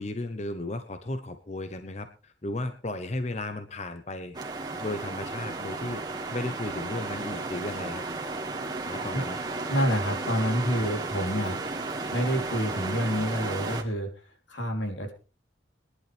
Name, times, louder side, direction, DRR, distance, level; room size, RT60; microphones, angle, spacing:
voice 1, 0.0-4.4 4.8-6.0 6.3-8.0 8.9-9.4, left 2 dB, 35° left, 9 dB, 1.0 m, -34 dB
sound 1, 4.3-13.8, right 3 dB, 20° right, 1.9 m, -34 dB
voice 2, 9.7-11.6 12.1-14.1 14.5-15.1, equal, 90° left, 3 dB, 3.4 m, -28 dB
21.0 x 11.0 x 3.4 m, 0.34 s
head